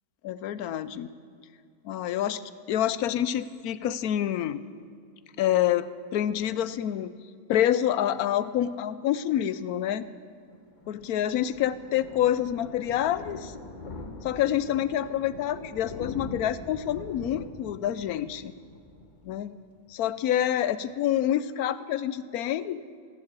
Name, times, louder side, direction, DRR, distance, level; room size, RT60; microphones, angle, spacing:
voice 1, 0.2-1.1 1.8-2.4 2.7-4.6 5.4-7.1 7.5-10.1 10.9-13.5 14.2-18.5 19.2-19.5 19.9-22.8, left 11 dB, 90° left, 15 dB, 1.1 m, -27 dB
Thunder, 10.5-19.9 20.2-20.4 20.8-20.9 21.0-21.1, left 2 dB, 35° left, 1.3 m, -43 dB
16.0 x 11.5 x 7.5 m, 2.3 s
omnidirectional pair, 1.6 m